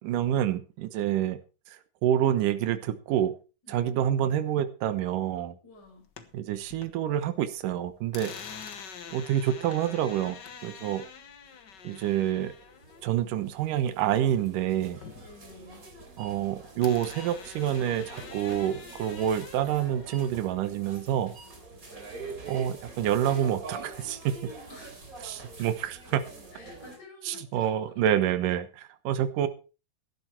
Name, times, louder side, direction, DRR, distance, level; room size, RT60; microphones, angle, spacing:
voice 1, 0.0-1.4 2.0-3.3 3.7-5.6 6.3-8.3 9.1-11.0 11.8-12.5 13.0-15.0 16.2-21.3 22.5-24.4 25.2-26.0 27.3-29.5, right 10 dB, 75° right, 11 dB, 2.6 m, -27 dB
voice 2, 5.6-6.1 15.1-15.9 24.7-24.9 25.3-26.2 26.5-27.9, left 2 dB, 30° left, 1 dB, 5.7 m, -52 dB
sound 1, 5.8-7.3 7.6-14.5 14.8-16.5 16.8-20.3, left 6 dB, 55° left, 1.2 m, -46 dB
sound 2, 11.8-27.0, right 3 dB, 25° right, 3.5 m, -45 dB
14.0 x 11.5 x 4.5 m, 0.33 s
omnidirectional pair, 3.8 m